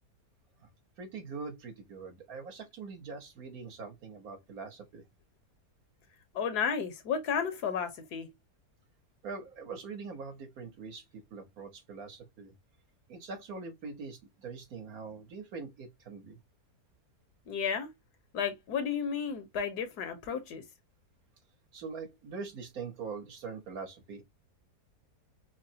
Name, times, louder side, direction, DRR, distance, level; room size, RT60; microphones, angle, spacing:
voice 1, 1.0-5.0 9.2-12.5 13.1-16.4 21.7-24.2, right 4 dB, 65° right, 1.5 m, -43 dB
voice 2, 6.3-8.3 17.5-17.9 18.3-20.6, left 7 dB, 80° left, 1.4 m, -32 dB
5.8 x 2.1 x 2.7 m
omnidirectional pair, 1.7 m